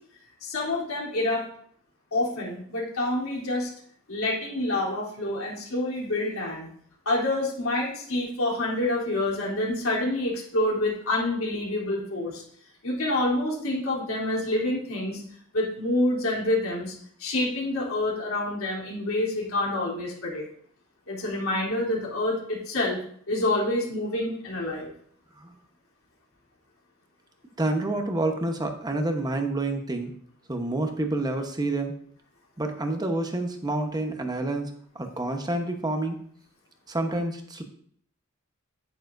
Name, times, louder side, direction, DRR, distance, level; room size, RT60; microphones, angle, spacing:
voice 1, 0.4-1.4 2.1-3.7 4.1-6.7 7.0-12.4 12.8-15.2 15.5-16.9 17.2-20.4 21.1-23.0 23.3-24.9, left 1 dB, 80° left, -4 dB, 3.3 m, -27 dB
voice 2, 27.6-30.1 30.5-31.9 32.6-34.7 34.9-36.2 36.9-37.6, right 2 dB, 20° right, 5 dB, 1.0 m, -28 dB
10.0 x 9.2 x 2.6 m, 0.62 s
head